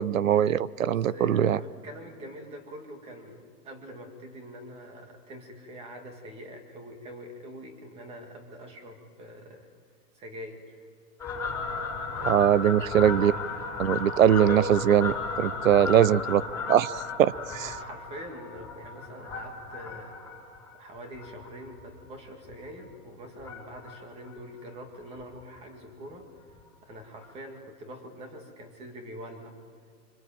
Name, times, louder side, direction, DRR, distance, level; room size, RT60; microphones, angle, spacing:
voice 1, 0.0-1.6 12.2-13.3 13.8-16.4 16.7-16.9 17.2-17.7, right 10 dB, 55° right, 20 dB, 0.7 m, -21 dB
voice 2, 0.7-9.7 10.1-10.8 12.2-12.6 15.5-16.2 17.5-20.2 20.7-26.3 26.8-29.5, equal, 10° right, 5 dB, 2.1 m, -44 dB
Fowl, 11.2-22.0 22.4-22.7 23.4-24.0 24.3-24.4 24.6-24.7 25.0-25.1 25.4-25.6 26.6-26.7 27.2-27.3, left 4 dB, 5° left, 4.5 m, -35 dB
25.5 x 24.5 x 9.0 m, 2.1 s
hypercardioid pair, 170°, 49 cm